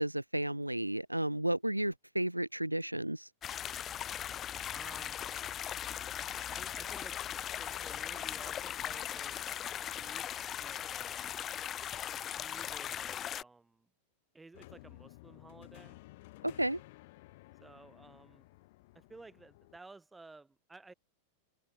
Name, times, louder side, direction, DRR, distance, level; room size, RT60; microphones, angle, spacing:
voice 1, 0.0-3.3 16.4-16.8, right 1 dB, 85° right, 0.3 m, -33 dB
sound 1, 3.4-13.4, left 10 dB, 25° left, 0.4 m, -39 dB
voice 2, 4.7-5.2 6.4-9.4 9.9-10.3 10.6-11.3 12.4-13.9 14.3-16.0 17.6-18.5 18.9-20.9, right 3 dB, 10° right, 4.3 m, -54 dB
sound 2, 14.5-19.8, left 20 dB, 50° left, 4.4 m, -55 dB
figure-of-eight pair, 90°, 0 cm